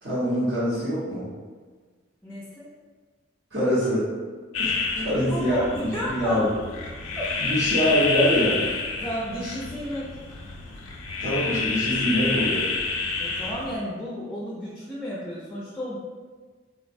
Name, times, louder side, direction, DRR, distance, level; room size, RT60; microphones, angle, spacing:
voice 1, 0.0-1.3 3.5-4.1 4.6-5.6 6.1-6.5 7.4-8.6 11.2-12.7, equal, 55° right, -12 dB, 0.9 m, -24 dB
voice 2, 2.2-2.7 5.0-6.5 7.1-7.5 9.0-10.1 13.2-16.0, equal, 10° left, -7 dB, 0.4 m, -33 dB
sound 1, 4.5-13.8, left 4 dB, 85° left, 0.4 m, -29 dB
3.9 x 2.0 x 2.5 m, 1.4 s
head